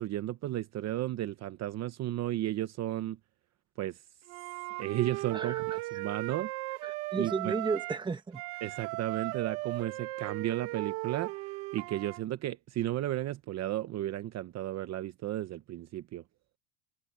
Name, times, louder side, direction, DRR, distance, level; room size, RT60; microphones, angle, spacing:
voice 1, 0.0-3.2 3.8-4.0 4.8-6.5 7.2-7.5 8.6-11.3 11.7-16.2, right 14 dB, 40° right, 0.8 m, -34 dB
Wind instrument woodwind instrument, 4.3-8.1 8.3-12.2, right 22 dB, 80° right, 1.8 m, -37 dB
voice 2, 5.3-6.0 6.8-8.4, right 4 dB, 10° right, 1.1 m, -34 dB
cardioid pair, 145°, 43 cm